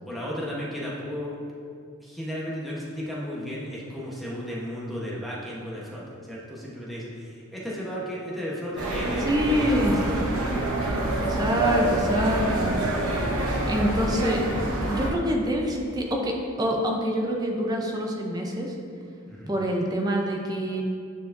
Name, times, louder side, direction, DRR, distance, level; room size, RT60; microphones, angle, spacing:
voice 1, 0.1-1.3 2.0-10.5 19.2-19.5, equal, ahead, -7 dB, 1.0 m, -34 dB
sound 1, 8.8-15.1, right 1 dB, 80° right, 0.9 m, -26 dB
voice 2, 9.3-10.0 11.2-13.2 13.7-18.7 19.5-20.8, equal, 20° right, 1 dB, 0.5 m, -26 dB
9.3 x 4.6 x 2.6 m, 2.4 s
head